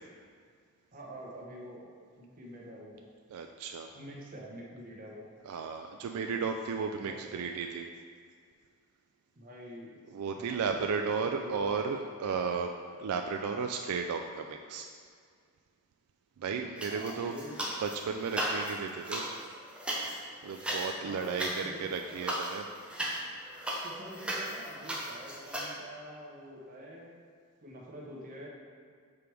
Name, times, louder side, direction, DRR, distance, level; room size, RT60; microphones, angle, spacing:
voice 1, 0.9-3.0 3.9-5.3 6.2-6.5 7.0-7.5 9.4-10.0 10.3-11.6 16.9-17.6 21.0-21.9 23.8-27.1 27.6-28.5, equal, 40° right, -3 dB, 1.0 m, -46 dB
voice 2, 3.3-3.9 5.5-7.9 10.1-12.7 13.0-14.9 16.4-17.3 17.8-19.2 20.4-22.7, right 5 dB, 90° right, 4 dB, 0.3 m, -34 dB
sound 1, 16.8-18.0 18.2-25.7, right 1 dB, 5° right, 0.6 m, -36 dB
6.9 x 4.6 x 3.4 m, 2.1 s
head